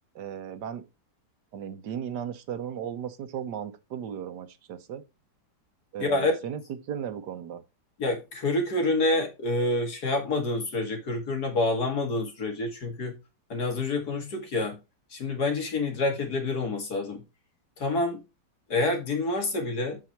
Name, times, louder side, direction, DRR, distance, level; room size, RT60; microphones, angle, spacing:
voice 1, 0.1-0.8 1.5-5.0 5.9-7.6, right 8 dB, 75° right, 1.5 m, -36 dB
voice 2, 6.0-6.3 8.0-13.1 13.5-14.8 15.1-17.2 17.8-18.2 18.7-20.0, left 2 dB, 60° left, 2.5 m, -27 dB
7.6 x 6.2 x 4.4 m
omnidirectional pair, 1.9 m